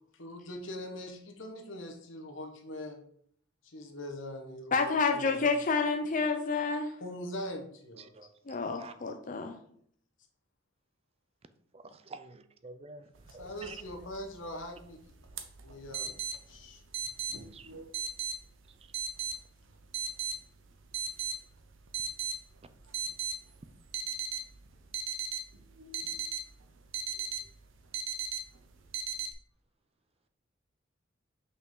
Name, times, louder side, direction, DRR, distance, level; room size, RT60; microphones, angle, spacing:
voice 1, 0.1-3.0 3.6-5.4 7.0-8.1 13.3-15.2 15.6-16.8, left 1 dB, 75° left, 3 dB, 1.2 m, -42 dB
voice 2, 4.7-6.9 8.5-9.6, left 4 dB, 40° left, 5 dB, 0.5 m, -29 dB
voice 3, 8.0-8.3 8.8-8.9 11.7-13.1 13.3-13.8 17.5-17.7 18.8-18.9, right 4 dB, 30° right, 11 dB, 0.4 m, -48 dB
sound 1, 13.2-29.3, right 5 dB, 75° right, 0.8 m, -39 dB
5.7 x 5.5 x 3.9 m, 0.64 s
head